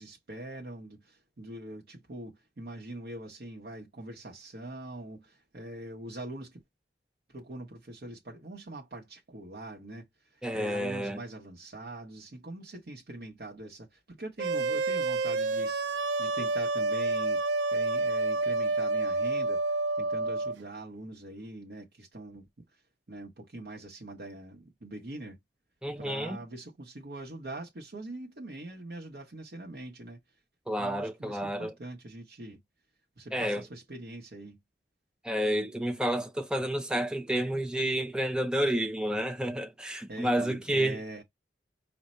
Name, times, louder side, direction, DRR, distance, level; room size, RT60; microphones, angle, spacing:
voice 1, 0.0-6.6 7.3-17.4 17.7-22.8 23.1-25.4 26.0-30.2 30.8-32.6 33.2-34.6 40.1-41.2, right 1 dB, 60° right, 0.9 m, -43 dB
voice 2, 10.4-11.2 25.8-26.4 30.7-31.7 33.3-33.6 35.2-41.0, right 1 dB, 5° right, 0.5 m, -30 dB
sound 1, 14.4-20.5, right 3 dB, 90° right, 0.5 m, -29 dB
5.1 x 2.1 x 4.2 m
head